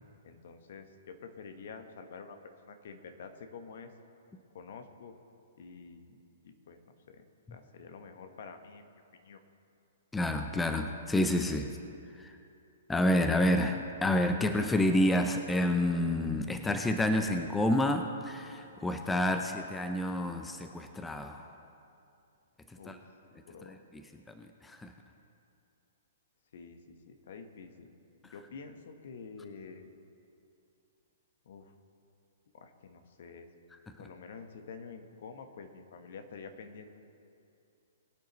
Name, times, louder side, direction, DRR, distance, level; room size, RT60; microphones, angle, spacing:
voice 1, 0.2-2.4 2.6-3.9 4.5-5.1 5.6-6.2 6.4-7.3 7.5-8.9 9.1-9.4 22.7-23.0 23.5-23.8 26.5-26.8 27.1-27.9 28.3-29.9 31.4-31.7 32.5-33.5 34.0-36.9, left 5 dB, 60° left, 6 dB, 1.2 m, -48 dB
voice 2, 10.1-11.8 12.2-12.3 12.9-21.5 22.9-23.0 23.7-23.8 24.4-24.9, left 1 dB, 10° left, 6 dB, 0.6 m, -29 dB
21.5 x 9.1 x 3.1 m, 2.6 s
figure-of-eight pair, 115°, 0 cm